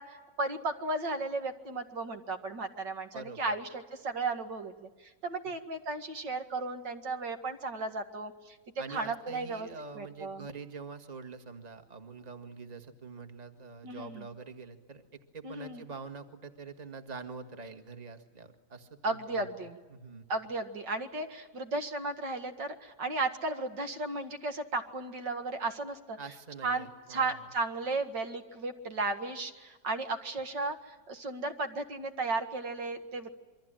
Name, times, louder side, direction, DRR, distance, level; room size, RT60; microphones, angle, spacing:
voice 1, 0.0-4.9 5.2-8.6 8.9-9.7 10.0-10.5 13.8-14.2 15.4-15.8 19.0-19.8 20.3-26.2 26.6-33.3, right 3 dB, 80° right, 6 dB, 2.6 m, -35 dB
voice 2, 3.1-3.5 8.8-20.2 26.2-27.4, right 4 dB, 25° right, 7 dB, 1.7 m, -45 dB
27.5 x 23.5 x 9.0 m, 1.2 s
omnidirectional pair, 1.9 m